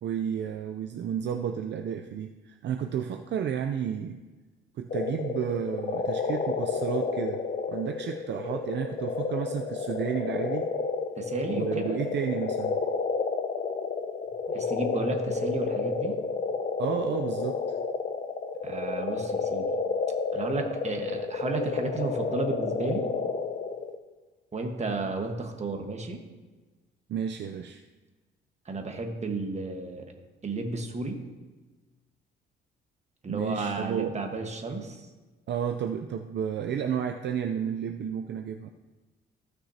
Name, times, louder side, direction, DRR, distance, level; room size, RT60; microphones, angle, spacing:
voice 1, 0.0-4.2 4.8-7.4 7.7-10.7 11.5-12.8 16.8-17.6 27.1-27.8 33.3-34.1 35.5-38.7, right 8 dB, 60° right, 5 dB, 0.5 m, -32 dB
sound 1, 4.9-24.0, left 4 dB, 40° left, 0.8 m, -31 dB
voice 2, 11.2-12.0 14.5-16.1 18.6-19.7 20.3-23.1 24.5-26.2 28.6-30.1 30.4-31.2 33.2-35.1, right 3 dB, 35° right, 3 dB, 1.4 m, -32 dB
16.0 x 6.2 x 2.8 m, 1.3 s
cardioid pair, 90°, 20 cm